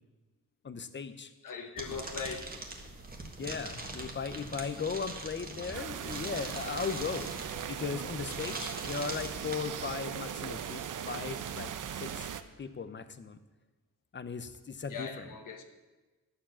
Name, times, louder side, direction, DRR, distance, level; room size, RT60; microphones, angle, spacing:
voice 1, 0.6-1.3 3.4-7.3 7.7-13.4 14.1-15.2, left 5 dB, 35° left, 11 dB, 0.8 m, -37 dB
voice 2, 1.4-2.6 14.9-15.6, left 5 dB, 70° left, 5 dB, 1.3 m, -40 dB
sound 1, 1.8-9.6, right 2 dB, 25° right, 1.6 m, -42 dB
sound 2, 5.7-12.4, right 8 dB, 65° right, 0.7 m, -39 dB
11.5 x 7.2 x 7.3 m, 1.2 s
wide cardioid pair, 130°, 33 cm